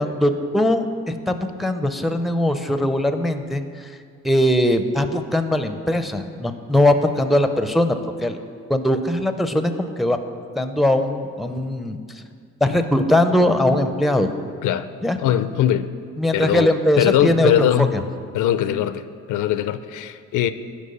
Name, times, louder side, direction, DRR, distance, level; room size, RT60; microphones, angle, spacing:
voice 1, 0.0-3.9 4.2-8.0 8.2-8.4 8.7-10.2 10.6-12.0 12.6-14.3 15.0-15.2 16.2-18.0, left 1 dB, ahead, 8 dB, 0.5 m, -20 dB
voice 2, 15.2-15.9 16.3-18.0 18.3-20.5, left 11 dB, 80° left, 12 dB, 0.5 m, -21 dB
10.0 x 5.2 x 5.4 m, 2.1 s
cardioid pair, 90°, 30 cm